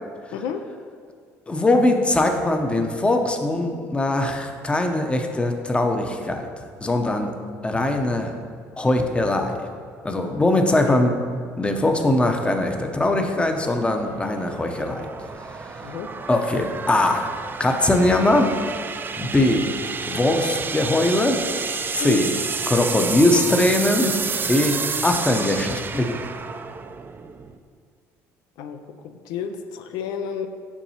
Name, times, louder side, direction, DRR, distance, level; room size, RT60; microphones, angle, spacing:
voice 1, 1.5-6.5 6.8-7.3 7.6-8.3 8.8-9.6 10.0-11.1 11.6-15.1 15.5-15.8 16.3-17.2 17.6-18.5 19.2-19.7 20.1-21.4 21.9-22.3 22.7-24.7 25.0-26.2, left 2 dB, 15° left, 4 dB, 0.7 m, -21 dB
sound 1, 12.2-27.6, right 5 dB, 30° right, 0.4 m, -31 dB
voice 2, 29.0-30.5, left 7 dB, 75° left, 6 dB, 0.4 m, -30 dB
7.0 x 5.3 x 2.9 m, 2.1 s
supercardioid pair, 75°, 7 cm